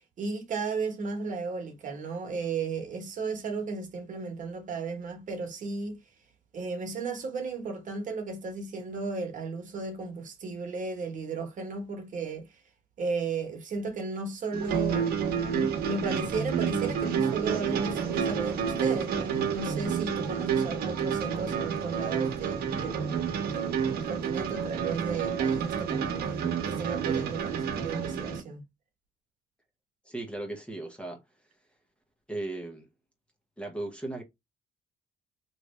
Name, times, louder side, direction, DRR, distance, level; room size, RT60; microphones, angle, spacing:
voice 1, 0.2-6.0 6.5-12.5 13.0-23.0 23.5-28.6, right 4 dB, 50° right, 1.2 m, -35 dB
sound 1, 14.5-28.4, right 7 dB, 70° right, 1.0 m, -29 dB
voice 2, 30.0-31.2 32.3-32.9 33.6-34.2, right 2 dB, 5° left, 0.9 m, -36 dB
3.1 x 2.6 x 3.2 m
cardioid pair, 110°, 17 cm